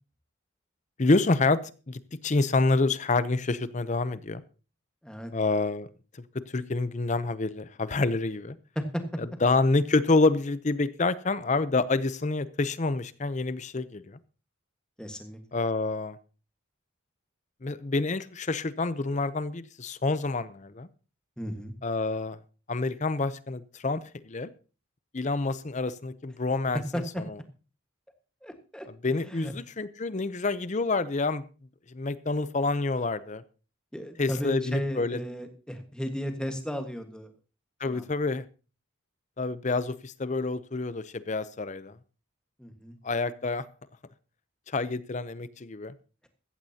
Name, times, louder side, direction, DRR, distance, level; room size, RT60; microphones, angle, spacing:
voice 1, 1.0-1.6 1.9-4.4 5.3-5.9 6.5-8.6 9.4-14.2 15.5-16.2 17.6-20.9 21.8-22.4 22.7-24.5 25.1-26.8 29.0-31.4 31.9-33.4 34.2-35.2 37.8-38.5 39.4-41.9 43.0-43.6 44.7-45.9, left 3 dB, 35° left, 15 dB, 0.6 m, -27 dB
voice 2, 15.0-15.4 21.4-21.7 26.9-27.2 28.4-28.9 29.2-29.5 33.9-37.3 37.8-38.1 42.6-43.0, equal, 5° left, 5 dB, 1.5 m, -34 dB
15.5 x 14.5 x 2.8 m, 0.35 s
head